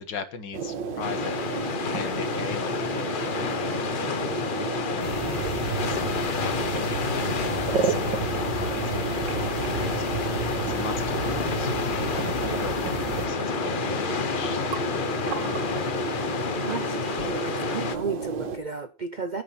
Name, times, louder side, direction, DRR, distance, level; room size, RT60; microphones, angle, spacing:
voice 1, 0.0-1.4 1.9-6.8 7.5-8.3 8.6-16.0, left 5 dB, 80° left, 2.1 m, -40 dB
sound 1, 0.5-18.6, right 5 dB, 85° right, 2.0 m, -32 dB
sound 2, 1.0-18.0, left 6 dB, 50° left, 0.6 m, -30 dB
sound 3, 5.0-13.3, right 4 dB, 15° right, 2.9 m, -34 dB
voice 2, 16.6-19.4, right 4 dB, 60° right, 0.4 m, -34 dB
16.0 x 6.0 x 4.3 m
omnidirectional pair, 1.9 m